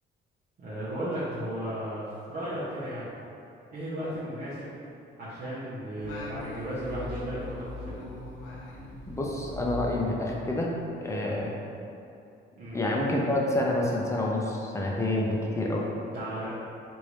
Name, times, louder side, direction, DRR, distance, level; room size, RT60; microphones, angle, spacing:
voice 1, 0.6-3.2 3.7-4.7 5.2-8.0 12.6-12.8 16.1-16.5, right 1 dB, 55° right, -11 dB, 0.8 m, -35 dB
Singing, 6.0-10.8, left 2 dB, 75° left, 0.9 m, -40 dB
voice 2, 9.1-10.7 11.0-11.5 12.7-15.8, left 1 dB, 15° left, -2 dB, 0.5 m, -28 dB
3.2 x 2.6 x 3.0 m, 2.6 s
cardioid pair, 90°, 20 cm